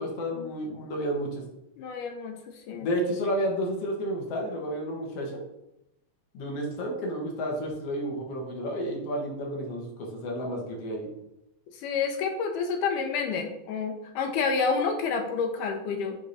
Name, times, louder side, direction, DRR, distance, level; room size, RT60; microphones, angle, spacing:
voice 1, 0.0-1.4 2.7-5.4 6.3-11.1, equal, 65° left, 0 dB, 1.6 m, -31 dB
voice 2, 1.8-2.4 2.7-2.9 11.8-16.2, left 5 dB, 80° left, 4 dB, 1.9 m, -29 dB
8.7 x 3.6 x 4.1 m, 0.86 s
omnidirectional pair, 4.4 m